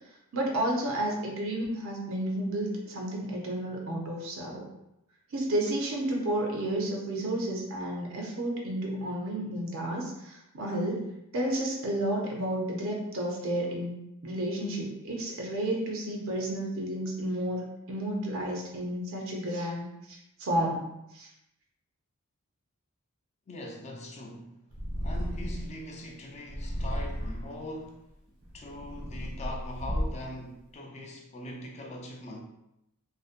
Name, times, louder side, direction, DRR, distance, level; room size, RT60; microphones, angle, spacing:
voice 1, 0.3-4.7 5.3-13.9 14.2-19.9 20.4-20.8 21.1-21.3, right 1 dB, 65° right, -1 dB, 0.5 m, -31 dB
voice 2, 23.5-24.5 25.0-28.1 28.5-32.4, left 1 dB, 30° left, 0 dB, 0.4 m, -41 dB
Purr, 24.7-25.8 26.5-27.6 28.3-30.4, equal, 85° right, 1.1 m, -33 dB
2.5 x 2.1 x 2.4 m, 0.84 s
head